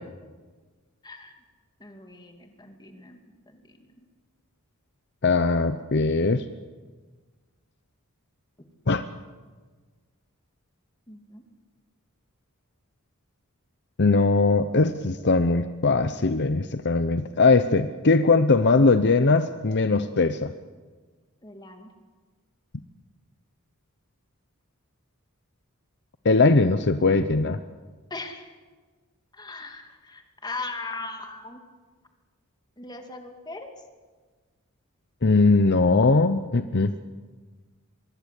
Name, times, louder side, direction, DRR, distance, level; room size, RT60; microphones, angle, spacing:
voice 1, 1.0-1.3 1.8-3.2 3.5-3.8 11.1-11.4 21.4-21.9 28.1-28.5 29.3-31.6 32.8-33.7, left 3 dB, 20° left, 4 dB, 2.5 m, -39 dB
voice 2, 5.2-6.4 8.9-9.0 14.0-20.5 26.2-27.6 35.2-36.9, left 3 dB, 50° left, 10 dB, 0.8 m, -20 dB
24.0 x 22.5 x 8.4 m, 1.4 s
head